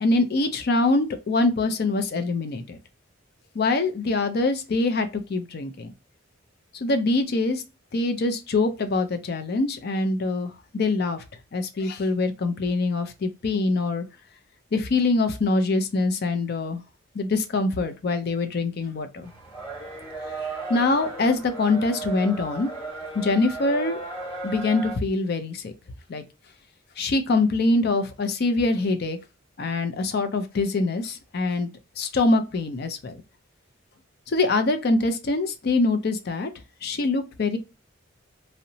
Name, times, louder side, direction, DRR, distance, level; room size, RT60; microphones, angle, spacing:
voice 1, 0.0-2.8 3.5-5.9 6.8-7.6 7.9-11.2 11.5-14.0 14.7-16.8 17.1-19.3 20.7-22.7 23.1-24.0 24.4-25.7 26.1-26.2 27.0-29.2 29.6-31.7 32.0-33.2 34.3-36.5 36.8-37.6, left 3 dB, 50° left, 0.4 m, -24 dB
sound 1, 19.2-25.0, right 2 dB, 25° left, 1.0 m, -35 dB
2.8 x 2.0 x 2.6 m
head